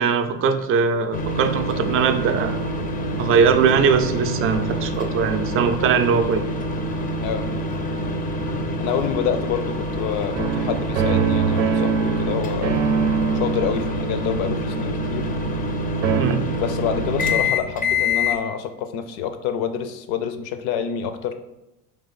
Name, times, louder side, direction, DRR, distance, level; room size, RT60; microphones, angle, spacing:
voice 1, 0.0-2.7 3.2-6.4 16.2-16.5, right 6 dB, 35° right, 9 dB, 0.4 m, -20 dB
sound 1, 1.1-18.4, left 1 dB, 25° left, 0.4 m, -26 dB
voice 2, 8.8-12.8 13.3-15.3 16.6-21.4, left 8 dB, 70° left, 9 dB, 0.6 m, -27 dB
sound 2, 10.3-15.7 16.0-16.2, right 6 dB, 90° right, 0.6 m, -24 dB
3.4 x 3.0 x 4.0 m, 0.91 s
supercardioid pair, 110°, 37 cm